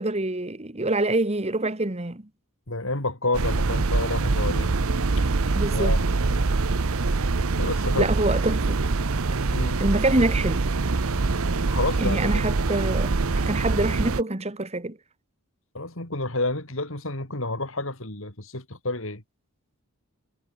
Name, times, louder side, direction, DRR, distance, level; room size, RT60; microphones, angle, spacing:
voice 1, 0.0-2.2 5.5-5.9 7.9-8.8 9.8-10.6 12.0-15.0, right 2 dB, 30° right, 1.5 m, -25 dB
voice 2, 2.7-4.7 5.2-5.3 5.7-6.0 7.6-8.1 9.5-9.8 11.7-12.4 15.7-19.2, left 2 dB, 60° left, 4.6 m, -29 dB
sound 1, 3.3-14.2, right 3 dB, 70° right, 0.9 m, -24 dB
head